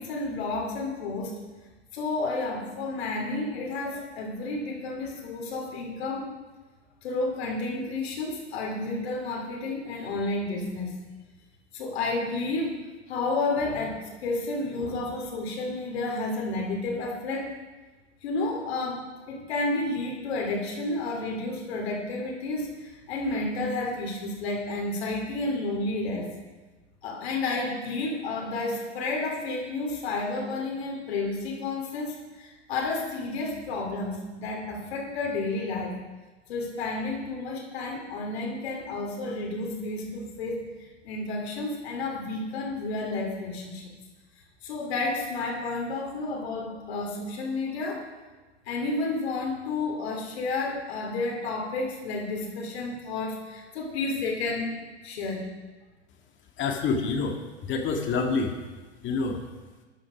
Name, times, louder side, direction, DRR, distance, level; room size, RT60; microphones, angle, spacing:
voice 1, 0.0-1.3 1.9-6.3 7.0-10.9 11.7-12.8 13.1-17.5 18.2-26.3 27.0-36.0 36.5-43.8 44.6-48.0 48.6-54.7 55.0-55.4, left 2 dB, 65° left, 0 dB, 3.0 m, -31 dB
voice 2, 56.6-58.5 59.0-59.4, left 4 dB, 35° left, 3 dB, 2.0 m, -27 dB
14.0 x 11.5 x 5.1 m, 1.2 s
figure-of-eight pair, 90°, 34 cm